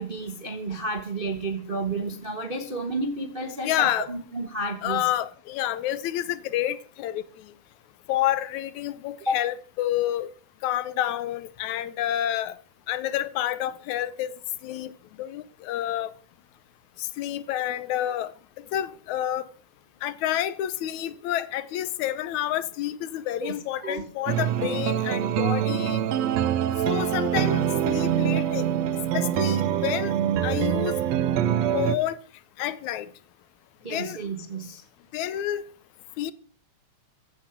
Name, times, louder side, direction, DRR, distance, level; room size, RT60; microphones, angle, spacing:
voice 1, 0.0-5.0 9.2-9.4 23.4-23.5 23.8-24.0 27.4-27.5 33.8-34.8, right 2 dB, 35° right, 0.8 m, -31 dB
voice 2, 3.6-4.1 4.8-7.2 8.1-10.3 10.6-12.6 12.9-14.4 14.6-16.1 17.0-18.3 18.7-19.4 20.0-26.0 26.9-28.7 29.1-30.1 30.4-30.9 31.7-32.2 32.6-33.1 33.9-34.2 35.1-35.6 36.2-36.3, left 12 dB, 75° left, 2.1 m, -29 dB
sound 1, 24.3-32.0, right 10 dB, 70° right, 1.8 m, -25 dB
15.5 x 10.0 x 6.0 m
omnidirectional pair, 3.4 m